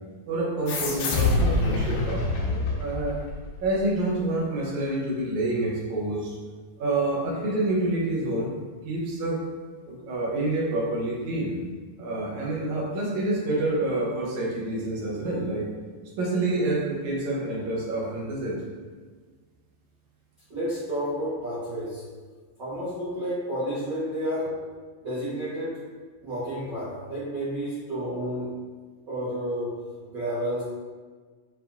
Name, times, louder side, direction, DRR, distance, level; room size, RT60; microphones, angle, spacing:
voice 1, 0.3-3.2 3.6-6.4 6.8-8.5 8.9-9.4 9.9-11.6 12.0-15.7 16.2-18.6, right 2 dB, 65° right, -4 dB, 2.1 m, -27 dB
sound 1, 0.7-3.7, left 3 dB, 75° left, 2.7 m, -26 dB
voice 2, 20.5-22.0 22.6-24.6 25.0-25.9 26.2-28.5 29.1-29.8 30.1-30.6, equal, 80° right, -11 dB, 0.9 m, -30 dB
7.1 x 5.2 x 2.6 m, 1.5 s
omnidirectional pair, 4.4 m